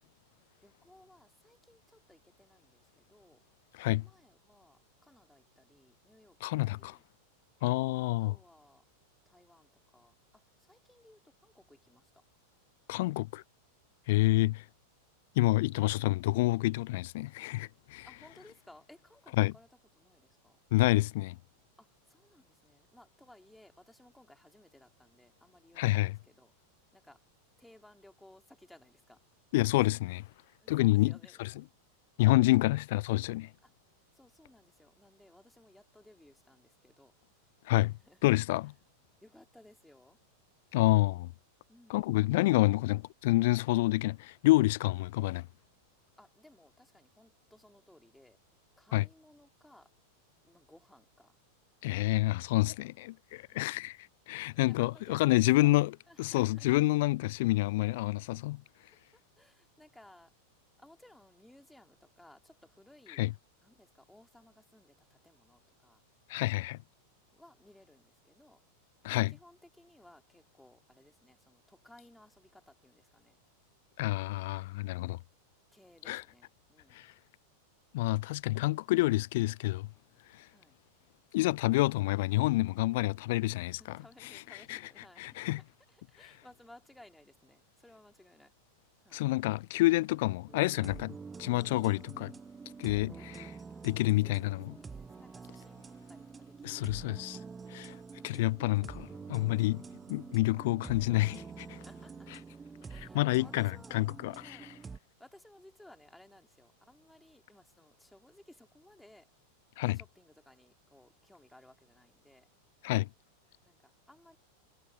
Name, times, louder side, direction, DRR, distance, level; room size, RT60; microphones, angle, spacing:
voice 1, 0.6-3.4 4.0-7.0 8.2-8.8 9.2-12.2 18.0-19.7 19.9-20.6 21.8-26.5 26.9-27.3 27.6-29.2 30.6-31.5 33.6-33.7 34.1-37.1 38.0-38.3 39.2-40.2 41.7-42.5 46.2-48.4 48.8-49.9 50.4-51.4 53.5-53.8 54.5-56.7 59.1-60.3 60.8-63.2 63.6-66.0 67.3-68.6 69.3-73.4 75.7-77.0 80.4-80.8 83.6-85.4 85.9-88.5 89.0-89.3 93.2-97.2 98.1-98.4 101.5-102.3 102.8-104.1 104.4-104.7 105.2-109.3 109.9-112.5 113.6-114.4, left 1 dB, 5° left, 3.4 m, -60 dB
voice 2, 6.4-7.0 7.6-8.3 12.9-13.4 14.1-14.6 15.4-18.1 19.4-19.5 20.7-21.4 25.8-26.2 29.5-30.3 30.7-31.1 31.4-31.5 32.2-33.5 37.7-37.9 38.2-38.7 40.7-41.3 41.9-45.4 48.9-49.0 51.8-55.9 56.2-58.6 63.2-63.3 66.3-66.8 69.0-69.3 74.0-75.2 76.1-76.2 76.9-77.1 77.9-79.9 80.3-80.5 81.3-83.8 84.7-84.8 85.2-85.6 89.1-92.3 92.8-93.5 93.8-94.7 96.6-97.4 97.7-98.0 98.2-99.8 100.1-101.7 103.1-104.6 109.8-110.0 112.8-113.1, left 19 dB, 50° left, 0.4 m, -28 dB
sound 1, 90.5-105.0, right 5 dB, 15° right, 1.1 m, -47 dB
sound 2, 98.4-102.6, right 8 dB, 65° right, 7.5 m, -61 dB
figure-of-eight pair, 90°, 0 cm